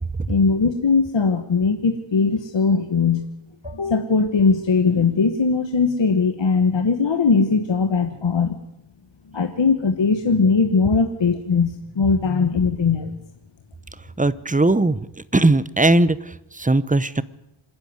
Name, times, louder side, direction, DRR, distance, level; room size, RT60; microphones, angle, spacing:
voice 1, 0.3-3.2 3.6-8.6 9.3-13.2, left 4 dB, 60° left, 6 dB, 1.4 m, -20 dB
voice 2, 14.2-15.1 15.3-17.2, right 2 dB, 15° right, 17 dB, 0.7 m, -19 dB
26.0 x 10.5 x 9.6 m, 0.85 s
wide cardioid pair, 95°, 50 cm